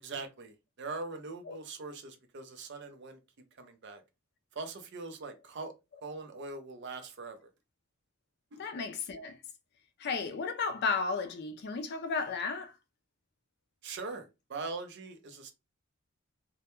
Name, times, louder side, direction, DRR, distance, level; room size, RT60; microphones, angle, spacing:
voice 1, 0.0-3.2 3.6-4.0 4.5-5.7 6.0-7.5 8.5-8.6 13.8-15.5, right 3 dB, 55° right, 0.5 m, -42 dB
voice 2, 8.6-9.4 10.0-12.7, left 4 dB, 50° left, 0.4 m, -33 dB
2.2 x 2.1 x 2.9 m
head